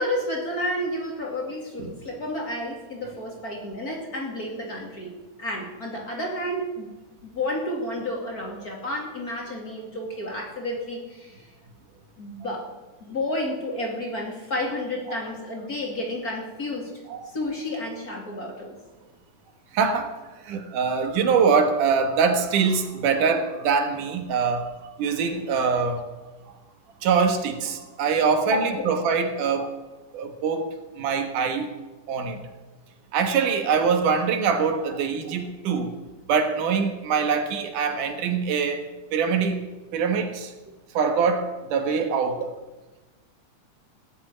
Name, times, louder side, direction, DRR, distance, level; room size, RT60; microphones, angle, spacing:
voice 1, 0.0-5.1 5.4-6.9 7.2-11.5 12.2-12.7 13.0-18.8 28.5-28.9, left 1 dB, 30° left, -1 dB, 2.6 m, -31 dB
voice 2, 19.7-20.1 20.4-24.7 25.0-26.0 27.0-29.7 30.1-30.7 31.0-31.7 32.1-32.4 33.1-36.0 36.3-38.8 39.1-40.5 40.9-42.5, right 5 dB, 80° right, 6 dB, 2.9 m, -23 dB
17.0 x 7.8 x 9.5 m, 1.2 s
omnidirectional pair, 3.6 m